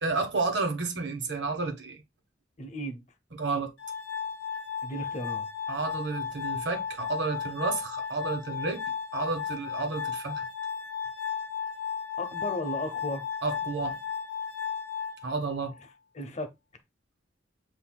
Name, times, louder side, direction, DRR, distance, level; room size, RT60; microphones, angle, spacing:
voice 1, 0.0-2.0 3.4-3.7 5.7-8.8 9.1-10.4 13.4-14.0 15.2-15.7, right 3 dB, 75° right, 1.2 m, -31 dB
voice 2, 2.6-3.0 4.8-5.5 12.2-13.3 16.1-16.5, left 1 dB, 40° left, 0.8 m, -35 dB
Glass, 3.8-15.8, left 7 dB, 85° left, 0.8 m, -35 dB
7.7 x 2.7 x 2.2 m
head